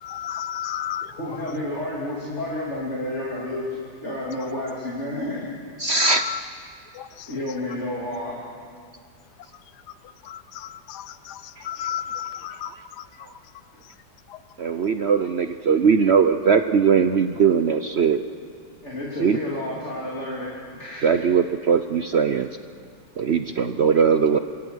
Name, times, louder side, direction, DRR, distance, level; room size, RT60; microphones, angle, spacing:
voice 1, 0.0-1.1 6.0-6.4 6.9-7.3 10.2-13.0 14.3-14.4, left 10 dB, 70° left, 13 dB, 1.4 m, -33 dB
voice 2, 1.1-3.7 4.0-5.5 7.3-8.4 18.8-21.2, left 1 dB, 40° left, -6 dB, 3.5 m, -30 dB
voice 3, 5.8-6.3 11.6-11.7 14.6-18.2 19.2-19.4 21.0-22.5 23.2-24.4, right 6 dB, 60° right, 9 dB, 0.6 m, -20 dB
26.5 x 24.0 x 6.3 m, 2.2 s
omnidirectional pair, 1.9 m